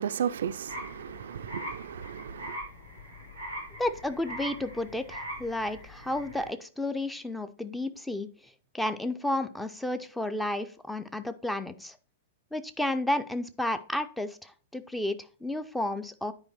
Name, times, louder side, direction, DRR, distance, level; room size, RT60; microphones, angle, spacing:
voice 1, 0.0-2.6, right 8 dB, 60° right, 0.3 m, -34 dB
sound 1, 0.7-6.5, equal, 85° left, 3.5 m, -42 dB
voice 2, 3.8-8.3 8.7-12.0 12.5-16.3, left 1 dB, 5° left, 0.4 m, -32 dB
9.6 x 4.6 x 2.9 m
figure-of-eight pair, 105°, 0 cm